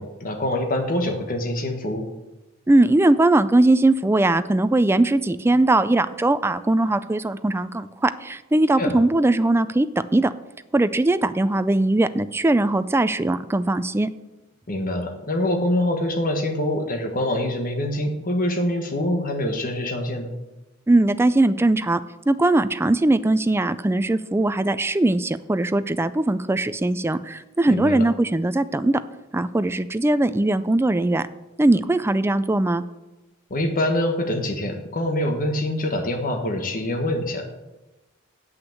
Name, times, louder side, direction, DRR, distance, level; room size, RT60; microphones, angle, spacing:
voice 1, 0.0-2.1 8.8-9.0 14.7-20.3 27.7-28.0 33.5-37.5, left 1 dB, 45° left, 4 dB, 1.4 m, -25 dB
voice 2, 2.7-10.3 10.7-14.1 20.9-22.0 22.3-29.0 29.3-31.3 31.6-32.8, right 2 dB, 10° right, 12 dB, 0.3 m, -20 dB
8.2 x 5.9 x 7.8 m, 1.0 s
head